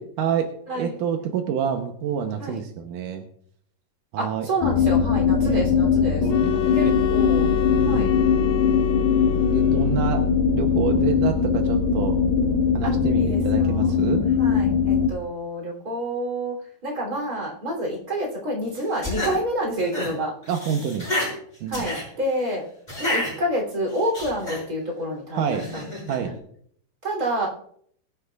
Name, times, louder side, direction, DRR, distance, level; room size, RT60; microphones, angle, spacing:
voice 1, 0.0-3.2 4.1-4.5 5.4-5.7 6.2-6.7 7.7-8.2 9.5-10.3 10.5-12.2 12.7-14.2 20.5-21.1 21.6-21.9 25.3-25.7 26.1-26.4, right 7 dB, 75° right, 4 dB, 1.9 m, -28 dB
voice 2, 0.7-1.0 2.4-2.6 4.2-6.3 6.7-7.5 7.8-8.1 10.9-11.0 12.8-14.0 14.4-20.4 21.7-22.6 23.0-25.8 26.2-26.3 27.0-27.5, right 1 dB, 25° right, -1 dB, 3.2 m, -28 dB
sound 1, 4.6-15.1, left 6 dB, 65° left, 3.0 m, -21 dB
sound 2, 6.3-10.2, left 13 dB, 80° left, 2.8 m, -27 dB
sound 3, 18.8-19.3 19.8-20.1 20.4-21.3 21.7-22.0 22.9-23.3 23.9-24.6 25.5-26.2, left 1 dB, 10° left, 6.3 m, -29 dB
22.0 x 10.0 x 2.4 m, 0.64 s
omnidirectional pair, 4.8 m